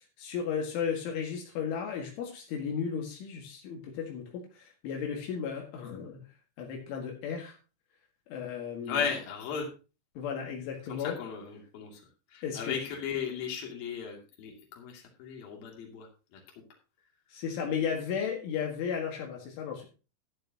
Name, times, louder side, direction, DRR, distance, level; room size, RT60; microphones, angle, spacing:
voice 1, 0.2-6.2 6.6-7.6 8.3-9.1 10.2-11.2 12.4-12.8 17.3-19.9, left 7 dB, 75° left, 0 dB, 4.2 m, -34 dB
voice 2, 8.9-9.7 10.9-12.0 12.3-16.4, left 7 dB, 55° left, 0 dB, 4.1 m, -36 dB
13.0 x 11.0 x 2.9 m, 0.33 s
omnidirectional pair, 5.6 m